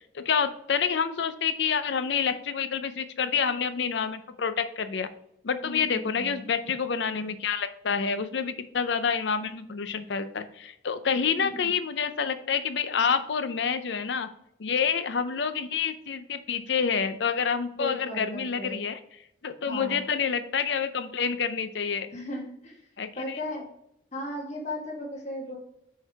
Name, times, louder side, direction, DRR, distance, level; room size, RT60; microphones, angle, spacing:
voice 1, 0.0-5.1 5.4-14.3 14.6-19.0 19.4-22.1 23.0-23.4, left 6 dB, 65° left, 11 dB, 0.5 m, -28 dB
voice 2, 5.6-6.4 11.3-11.7 17.8-18.8 19.7-20.0 22.1-22.7 23.2-23.7 24.1-25.6, left 1 dB, 35° left, -1 dB, 1.4 m, -36 dB
5.5 x 4.6 x 4.6 m, 0.76 s
head